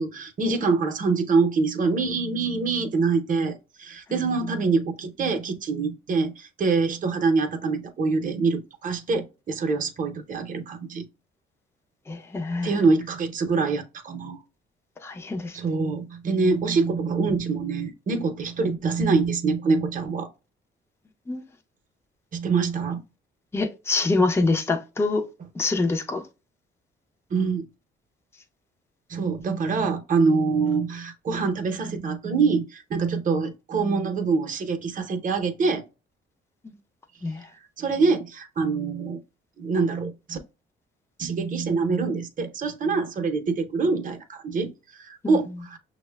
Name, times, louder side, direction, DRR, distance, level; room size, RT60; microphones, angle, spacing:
voice 1, 0.0-11.0 12.6-14.4 15.5-20.3 22.3-23.0 27.3-27.7 29.1-35.8 37.8-39.2 39.6-40.4 41.2-45.8, right 4 dB, 40° right, 0.7 m, -25 dB
voice 2, 12.1-12.7 15.0-15.6 21.3-21.4 23.5-25.3 25.5-26.3 36.6-36.7 37.2-37.5 45.2-45.4, left 3 dB, 10° left, 0.5 m, -25 dB
6.1 x 2.1 x 2.2 m
cardioid pair, 90°, 20 cm